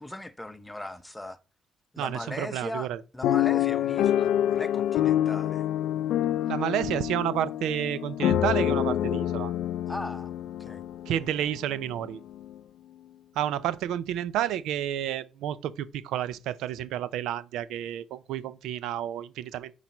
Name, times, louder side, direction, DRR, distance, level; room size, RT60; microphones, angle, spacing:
voice 1, 0.0-1.4 1.9-5.7 9.9-10.3 10.6-10.8, left 1 dB, 10° left, 0.8 m, -39 dB
voice 2, 2.0-3.0 6.5-9.5 11.1-12.2 13.4-19.7, right 11 dB, 90° right, 0.4 m, -30 dB
sound 1, 3.2-11.3 11.9-12.0 12.3-12.6, left 11 dB, 85° left, 0.4 m, -27 dB
7.3 x 4.1 x 5.9 m
cardioid pair, 90°, 0 cm